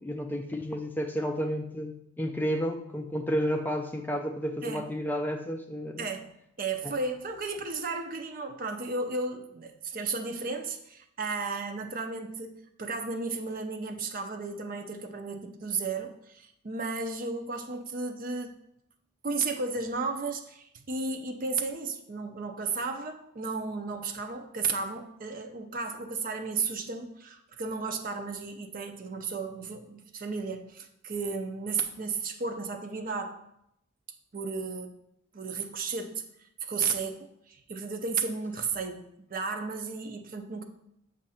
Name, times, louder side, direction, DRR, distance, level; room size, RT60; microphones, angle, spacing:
voice 1, 0.0-6.1 6.8-6.9, equal, 10° left, 3 dB, 0.4 m, -31 dB
voice 2, 6.6-18.5 19.2-33.4 34.3-35.0 35.3-36.2 36.6-40.6, right 4 dB, 45° right, 5 dB, 0.6 m, -34 dB
7.3 x 2.6 x 5.6 m, 0.76 s
head